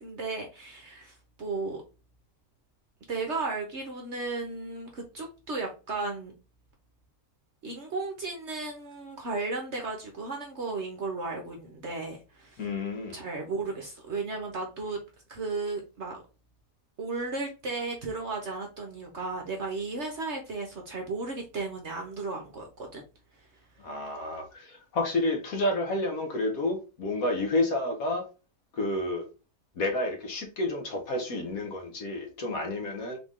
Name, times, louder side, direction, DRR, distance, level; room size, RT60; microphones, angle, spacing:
voice 1, 0.0-1.8 3.1-6.3 7.6-12.6 13.1-15.0 15.3-16.2 17.0-23.0, right 3 dB, 50° right, 1.0 m, -34 dB
voice 2, 12.6-13.2 23.8-28.3 28.7-29.3 29.8-33.2, left 2 dB, 60° left, 1.3 m, -30 dB
4.1 x 3.2 x 3.6 m
omnidirectional pair, 1.8 m